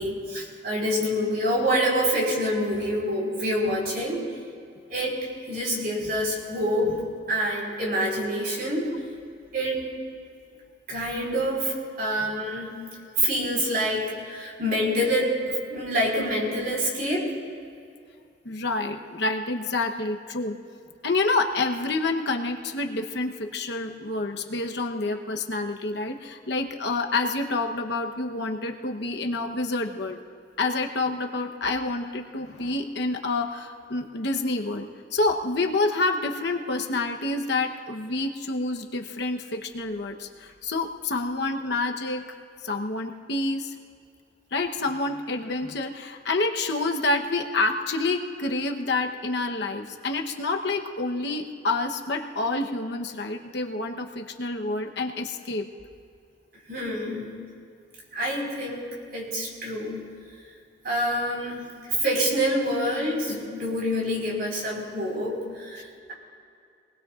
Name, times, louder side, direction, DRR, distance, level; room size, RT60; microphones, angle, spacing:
voice 1, 0.0-4.2 4.9-8.9 9.5-9.9 10.9-12.9 13.2-17.3 56.7-57.4 58.1-60.1 60.8-61.7 62.0-66.1, equal, 55° right, -3 dB, 4.6 m, -27 dB
voice 2, 18.4-20.6 21.0-30.2 30.6-42.3 42.6-43.7 44.5-55.7, left 2 dB, 65° left, 3 dB, 1.0 m, -28 dB
26.5 x 20.0 x 2.5 m, 2.3 s
head